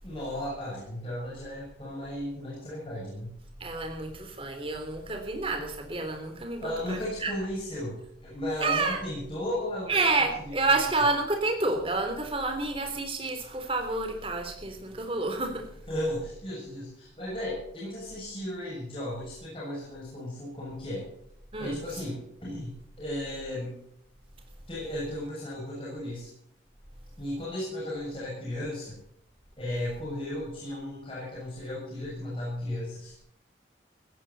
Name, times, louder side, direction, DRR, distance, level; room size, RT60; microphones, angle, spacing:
voice 1, 0.0-3.3 6.6-10.0 10.4-10.8 15.9-21.1 21.6-23.8 24.7-26.3 27.2-29.0 29.6-33.1, left 1 dB, 30° left, -6 dB, 6.8 m, -35 dB
voice 2, 3.6-7.3 8.6-9.0 9.9-15.7 21.5-21.8, right 3 dB, 30° right, 5 dB, 3.4 m, -29 dB
16.0 x 16.0 x 4.2 m, 0.72 s
head